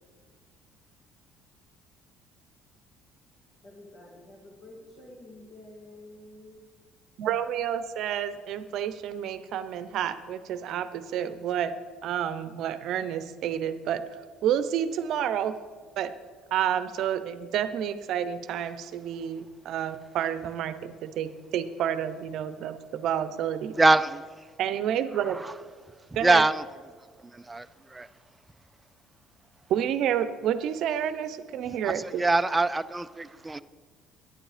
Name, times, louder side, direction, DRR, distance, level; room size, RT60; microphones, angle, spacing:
voice 1, 3.6-6.6, left 1 dB, 50° left, 2.5 m, -49 dB
voice 2, 7.2-11.7 12.0-14.0 14.4-15.5 16.0-16.1 16.5-23.7 24.6-25.4 26.1-26.4 29.7-32.3, right 9 dB, 65° right, 0.6 m, -29 dB
voice 3, 23.7-24.2 26.2-26.6 27.2-28.1 31.8-33.6, right 2 dB, 15° right, 0.3 m, -24 dB
9.6 x 8.9 x 5.0 m
cardioid pair, 105°, 0 cm